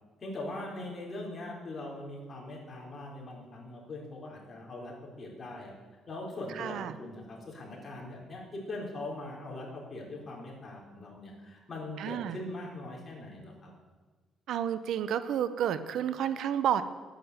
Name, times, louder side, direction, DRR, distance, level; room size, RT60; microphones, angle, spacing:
voice 1, 0.2-5.7 6.1-13.7, left 2 dB, 40° left, -2 dB, 4.2 m, -41 dB
voice 2, 6.6-6.9 12.0-12.4 14.5-16.8, right 9 dB, 75° right, 13 dB, 0.8 m, -30 dB
11.5 x 9.2 x 8.0 m, 1.4 s
cardioid pair, 90°, 0 cm